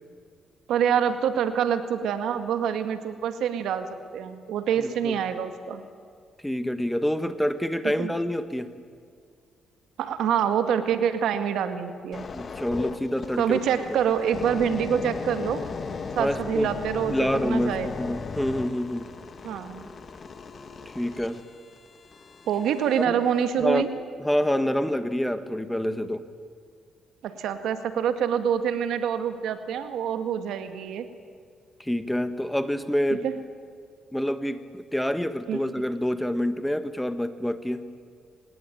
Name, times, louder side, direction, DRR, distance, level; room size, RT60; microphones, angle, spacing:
voice 1, 0.7-3.9 4.1-5.9 8.0-8.1 10.0-12.2 13.4-15.6 16.2-17.9 19.4-19.9 22.5-23.9 27.2-31.1 33.2-33.3 35.5-35.6, right 8 dB, 80° right, 9 dB, 1.9 m, -26 dB
voice 2, 4.8-5.2 6.4-8.7 12.3-13.6 13.9-14.0 16.2-16.7 17.0-19.1 20.9-21.4 23.1-23.2 23.6-23.9 24.2-26.2 31.8-33.3 34.1-37.8, equal, 5° left, 11 dB, 1.5 m, -27 dB
sound 1, 12.1-23.1 23.6-23.8, left 5 dB, 40° left, 1.8 m, -37 dB
26.0 x 19.5 x 9.2 m, 2.2 s
cardioid pair, 90°, 0 cm